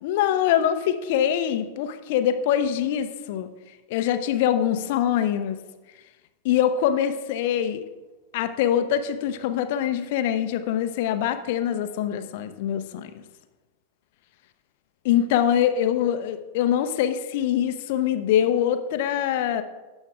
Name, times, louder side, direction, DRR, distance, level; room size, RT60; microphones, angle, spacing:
voice 1, 0.0-3.5 3.9-5.6 6.4-7.8 8.3-13.1 15.0-19.6, left 10 dB, 50° left, 9 dB, 0.6 m, -24 dB
16.0 x 6.3 x 2.4 m, 1.2 s
figure-of-eight pair, 90°, 0 cm